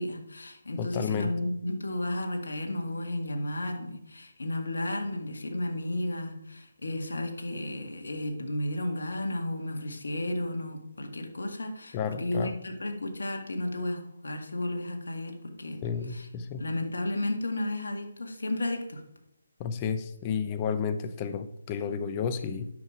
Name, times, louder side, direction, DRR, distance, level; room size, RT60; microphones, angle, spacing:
voice 1, 0.0-15.8 16.1-16.3 16.6-19.0, left 1 dB, 75° left, 4 dB, 1.9 m, -33 dB
voice 2, 0.8-1.3 11.9-12.5 15.8-16.6 19.6-22.7, left 6 dB, 25° left, 9 dB, 0.8 m, -31 dB
9.6 x 6.7 x 4.9 m, 0.80 s
figure-of-eight pair, 155°, 0 cm